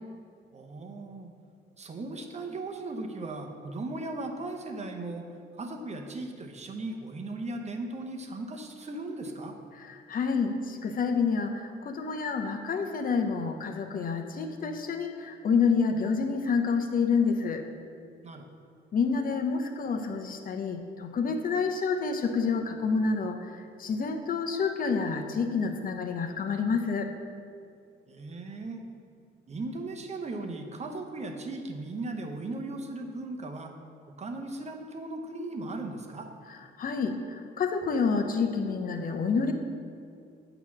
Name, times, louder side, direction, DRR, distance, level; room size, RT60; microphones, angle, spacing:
voice 1, 0.5-1.3 1.8-5.2 5.6-9.6 18.2-18.4 28.1-28.8 29.5-33.7 34.1-36.3, right 2 dB, 35° right, 4 dB, 0.8 m, -37 dB
voice 2, 9.8-17.6 18.9-27.1 36.8-39.5, left 5 dB, 45° left, 5 dB, 0.7 m, -28 dB
8.3 x 2.9 x 6.0 m, 2.3 s
cardioid pair, 90°, 20 cm